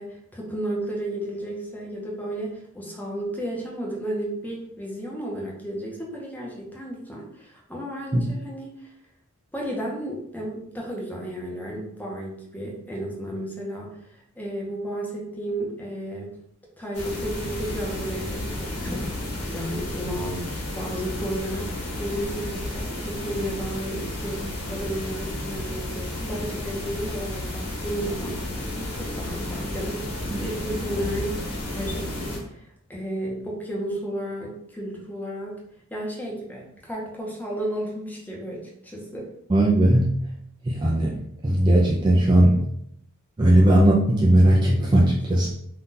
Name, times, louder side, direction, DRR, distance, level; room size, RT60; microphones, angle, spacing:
voice 1, 0.0-8.9 9.5-16.3 16.8-28.6 28.9-30.1 30.3-31.4 31.7-35.6 35.9-39.3, right 1 dB, 10° left, -3 dB, 0.7 m, -33 dB
sound 1, 16.9-32.4, left 1 dB, 85° left, 1.1 m, -32 dB
voice 2, 39.5-40.1 40.6-42.6 43.4-45.5, right 1 dB, 20° right, -3 dB, 0.3 m, -18 dB
2.7 x 2.3 x 3.7 m, 0.73 s
head